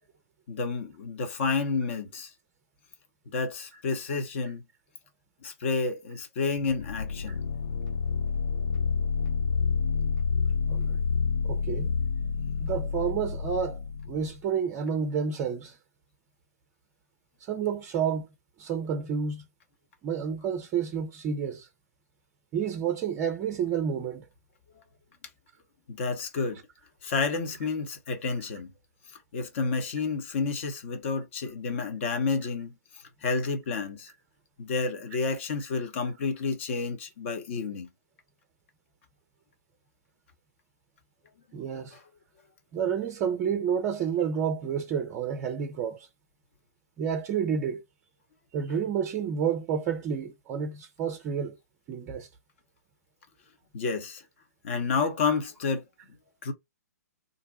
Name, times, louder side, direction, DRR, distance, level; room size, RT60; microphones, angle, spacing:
voice 1, 0.5-2.3 3.3-4.6 5.4-7.4 25.9-26.6 27.0-28.7 29.3-32.7 33.2-34.1 34.6-37.9 41.9-42.0 53.7-54.2 54.6-55.8 56.4-56.5, left 4 dB, 45° left, 1.0 m, -30 dB
sound 1, 6.6-14.4, left 5 dB, 75° left, 0.4 m, -29 dB
voice 2, 11.4-11.9 12.6-13.8 14.1-15.8 17.5-18.3 18.6-19.4 20.0-21.7 22.5-24.2 41.5-41.9 42.7-46.0 47.0-47.8 48.5-51.6 51.9-52.3, right 7 dB, 25° right, 0.5 m, -29 dB
2.7 x 2.1 x 3.9 m
figure-of-eight pair, 130°, 9 cm